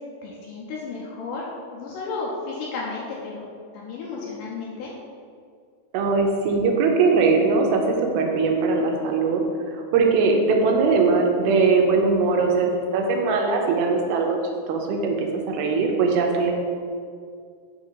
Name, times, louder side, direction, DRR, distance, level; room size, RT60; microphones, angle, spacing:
voice 1, 0.2-3.5 3.7-4.9, left 4 dB, 80° left, -4 dB, 2.1 m, -33 dB
voice 2, 5.9-7.8 8.1-9.4 9.7-14.4 14.7-16.5, right 4 dB, 90° right, 2 dB, 2.5 m, -20 dB
6.3 x 2.7 x 5.4 m, 2.2 s
omnidirectional pair, 4.3 m